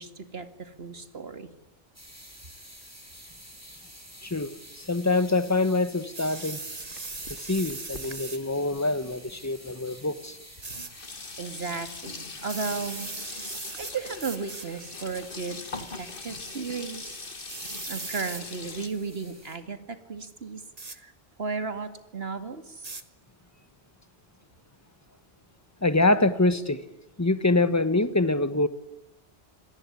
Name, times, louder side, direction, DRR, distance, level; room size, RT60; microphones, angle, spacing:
voice 1, 0.0-1.5 11.1-13.1 13.8-17.3 17.9-21.1 21.4-23.0, right 4 dB, 70° right, 9 dB, 2.4 m, -35 dB
sound 1, 1.9-19.6, equal, 15° right, 6.1 m, -50 dB
voice 2, 4.2-6.6 7.3-10.4 25.8-26.8 27.2-28.7, left 2 dB, 15° left, 13 dB, 1.3 m, -25 dB
sound 2, 6.1-8.4 10.6-10.9 12.4-13.9 14.2-14.7 15.5-15.8 17.5-18.4 20.8-21.0 22.8-23.0, right 3 dB, 35° right, 1.6 m, -38 dB
Sink (filling or washing), 6.4-9.5 10.2-10.3 10.6-18.9, left 3 dB, 55° left, 2.1 m, -42 dB
25.0 x 18.5 x 9.8 m, 0.91 s
omnidirectional pair, 1.1 m